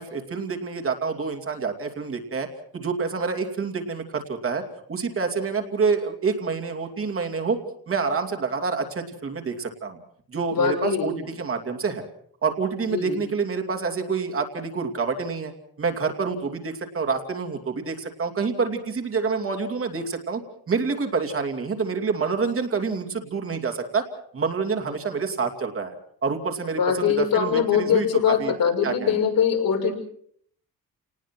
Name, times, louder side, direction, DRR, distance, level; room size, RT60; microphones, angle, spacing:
voice 1, 0.0-2.5 2.7-4.6 4.9-7.6 7.9-10.0 10.3-12.0 12.4-15.5 15.8-20.4 20.7-24.0 24.3-28.5 28.8-29.2, right 5 dB, 35° right, 4 dB, 2.7 m, -27 dB
voice 2, 10.5-11.1 12.9-13.2 26.8-30.0, left 7 dB, 65° left, 2 dB, 6.5 m, -22 dB
29.5 x 19.5 x 6.0 m, 0.64 s
wide cardioid pair, 165°, 36 cm